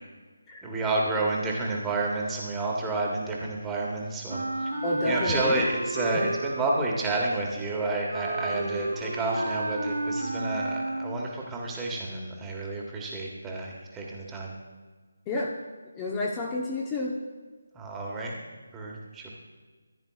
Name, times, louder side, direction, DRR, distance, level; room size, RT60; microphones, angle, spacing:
voice 1, 0.6-4.7 5.0-14.5 17.7-18.4 18.7-19.3, right 2 dB, 10° right, -2 dB, 1.5 m, -30 dB
Wind instrument woodwind instrument, 4.3-11.3, right 2 dB, 55° right, 2.1 m, -32 dB
voice 2, 4.8-5.7 6.1-6.2 8.5-8.8 15.3-15.5 15.9-17.2, left 2 dB, 15° left, -2 dB, 0.9 m, -30 dB
15.0 x 9.7 x 2.4 m, 1.4 s
figure-of-eight pair, 155°, 0 cm